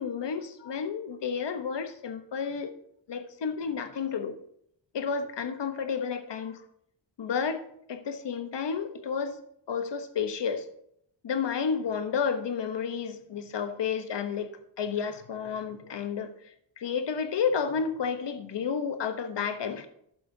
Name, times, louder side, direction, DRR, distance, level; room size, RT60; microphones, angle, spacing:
voice 1, 0.0-2.7 3.1-4.3 4.9-6.6 7.2-7.6 7.9-9.4 9.7-10.7 11.2-14.5 14.8-19.9, left 6 dB, 60° left, 9 dB, 1.0 m, -31 dB
11.5 x 9.4 x 2.7 m, 0.72 s
cardioid pair, 80°, 47 cm